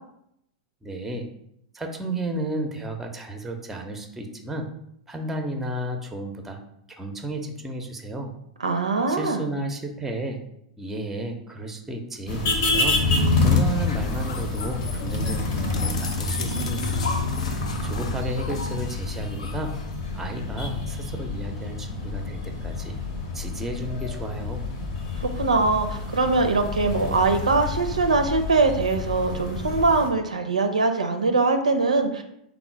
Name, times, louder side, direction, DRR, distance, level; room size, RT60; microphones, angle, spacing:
voice 1, 0.8-1.3 1.7-4.6 5.1-6.6 7.0-8.3 9.1-10.4 10.8-13.0 13.4-17.1 17.4-19.7 20.1-22.9 23.3-24.7, right 1 dB, 5° right, 3 dB, 0.5 m, -32 dB
voice 2, 8.6-9.4 25.2-32.2, right 3 dB, 80° right, 5 dB, 0.4 m, -22 dB
sound 1, 12.3-30.1, left 3 dB, 50° left, 0.7 m, -28 dB
sound 2, 13.5-20.5, left 4 dB, 70° left, 0.4 m, -36 dB
3.7 x 2.0 x 4.3 m, 0.75 s
figure-of-eight pair, 95°, 4 cm